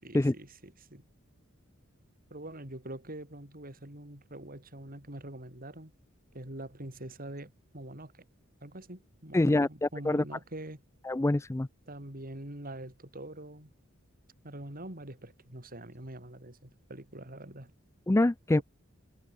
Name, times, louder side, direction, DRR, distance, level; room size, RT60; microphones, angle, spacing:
voice 1, 0.0-1.0 2.3-5.9 6.3-8.2 8.6-10.8 11.9-13.7 14.4-17.7 18.6-18.7, right 1 dB, 45° right, 5.2 m, -44 dB
voice 2, 9.3-10.2 11.0-11.7 18.1-18.6, left 2 dB, 15° left, 0.4 m, -25 dB
head